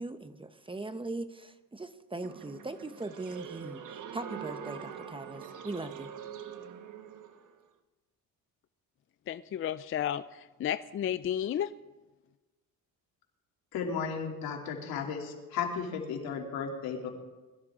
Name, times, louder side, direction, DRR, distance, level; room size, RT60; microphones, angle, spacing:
voice 1, 0.0-3.8 4.1-6.1, right 2 dB, 15° right, 10 dB, 0.8 m, -40 dB
sound 1, 2.2-7.6, right 7 dB, 60° right, 1.3 m, -44 dB
voice 2, 9.3-11.7, left 10 dB, 35° left, 13 dB, 0.4 m, -32 dB
voice 3, 13.7-17.1, left 6 dB, 80° left, 0 dB, 3.0 m, -34 dB
21.5 x 13.0 x 3.7 m, 1.2 s
cardioid pair, 100°, 36 cm